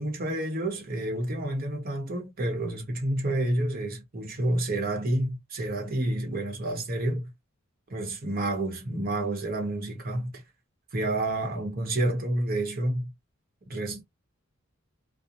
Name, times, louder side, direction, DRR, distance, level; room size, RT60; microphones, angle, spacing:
voice 1, 0.0-7.3 7.9-10.4 10.9-13.1 13.7-14.0, right 1 dB, 40° right, 0.9 m, -29 dB
2.5 x 2.0 x 2.8 m
head